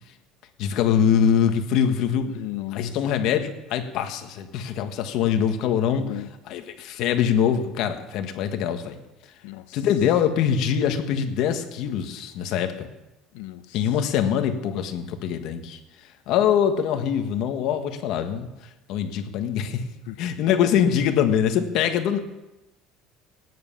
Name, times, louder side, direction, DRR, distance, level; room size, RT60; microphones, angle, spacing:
voice 1, 0.6-2.3 2.7-6.1 6.5-9.0 9.7-12.9 13.7-15.8 16.3-18.5 18.9-19.8 20.2-22.2, left 8 dB, 50° left, 1.5 m, -23 dB
voice 2, 2.2-2.9 5.9-6.3 9.4-9.8 13.3-13.8 20.1-20.2, left 16 dB, 90° left, 0.9 m, -35 dB
18.0 x 9.8 x 7.3 m
cardioid pair, 180°, 0 cm